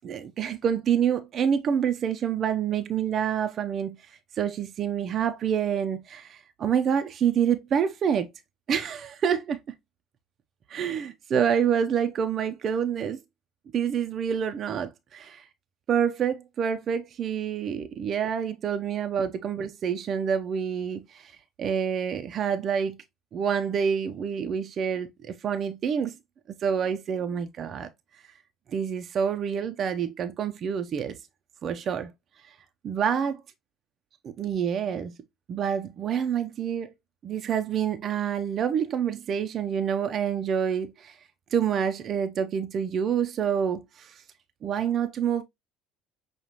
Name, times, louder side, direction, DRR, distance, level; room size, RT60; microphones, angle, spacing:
voice 1, 0.0-8.3 8.7-9.6 10.7-13.2 13.7-15.5 15.9-21.3 21.6-23.0 23.3-26.2 26.6-27.9 28.7-31.2 31.6-32.1 32.5-32.6 32.8-33.4 34.2-35.1 35.5-36.9 37.2-41.2 41.5-44.2 44.6-45.4, right 8 dB, 45° right, 0.5 m, -27 dB
5.9 x 2.3 x 2.9 m
figure-of-eight pair, 60°, 0 cm